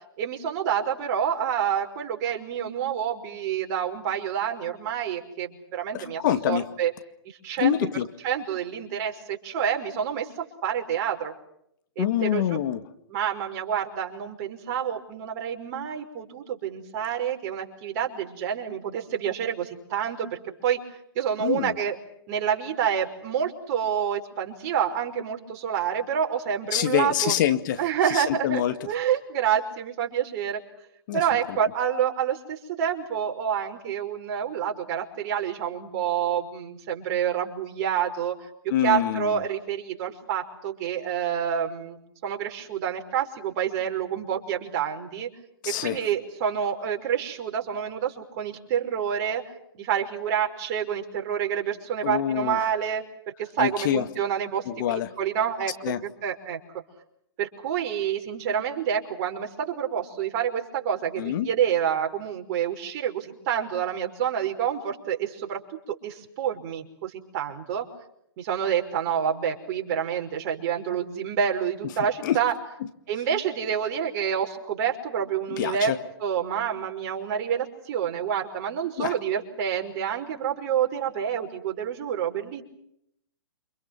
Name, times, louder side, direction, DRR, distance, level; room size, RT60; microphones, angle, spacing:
voice 1, 0.2-6.2 6.5-6.9 7.3-7.8 8.2-10.3 10.6-11.3 12.0-12.6 13.1-20.8 21.2-22.0 22.3-27.3 27.8-30.6 31.1-38.4 38.6-45.3 45.7-49.4 49.7-53.0 53.4-56.6 57.4-65.6 65.9-67.9 68.4-72.5 73.1-75.9 76.2-82.6, right 8 dB, 45° right, 3 dB, 5.5 m, -28 dB
voice 2, 5.9-6.7 7.6-8.1 12.0-12.8 21.4-21.8 26.7-28.9 31.1-31.2 31.5-31.6 38.7-39.4 45.6-46.0 52.0-52.7 53.6-54.1 54.7-55.1 55.8-56.0 61.2-61.5 72.2-72.4 75.5-76.0 79.0-79.1, left 11 dB, 50° left, 10 dB, 2.1 m, -26 dB
29.0 x 27.0 x 6.1 m, 0.74 s
hypercardioid pair, 130°, 13 cm